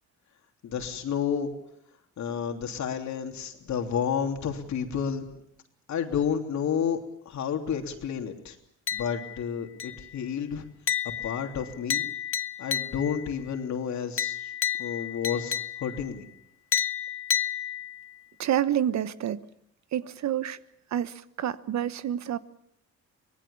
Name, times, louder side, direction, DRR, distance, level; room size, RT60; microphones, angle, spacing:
voice 1, 0.6-1.5 2.2-5.3 5.9-7.0 7.2-8.6 8.9-10.6 11.2-12.1 12.6-14.4 14.8-16.2, left 7 dB, 70° left, 5 dB, 3.2 m, -30 dB
sound 1, 8.9-9.4 9.8-10.2 10.9-13.3 14.2-16.1 16.7-18.1, left 9 dB, 45° left, 0.8 m, -31 dB
voice 2, 18.4-19.4 19.9-20.6 20.9-22.4, right 10 dB, 65° right, 14 dB, 1.1 m, -28 dB
25.0 x 19.0 x 7.2 m, 0.78 s
cardioid pair, 90°, 30 cm